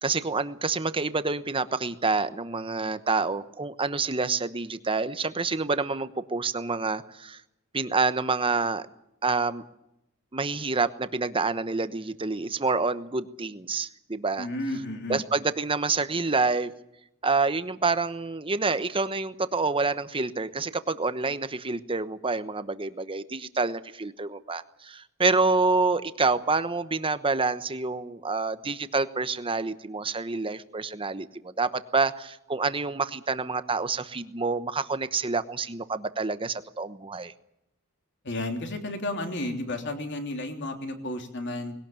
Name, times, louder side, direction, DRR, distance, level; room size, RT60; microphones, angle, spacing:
voice 1, 0.0-7.4 7.7-8.9 9.2-9.6 10.3-14.5 15.1-16.7 17.2-37.3, right 3 dB, 25° right, 12 dB, 1.0 m, -27 dB
voice 2, 14.4-15.2 38.2-41.7, left 1 dB, 55° left, 4 dB, 3.2 m, -32 dB
20.5 x 18.0 x 9.0 m, 0.83 s
head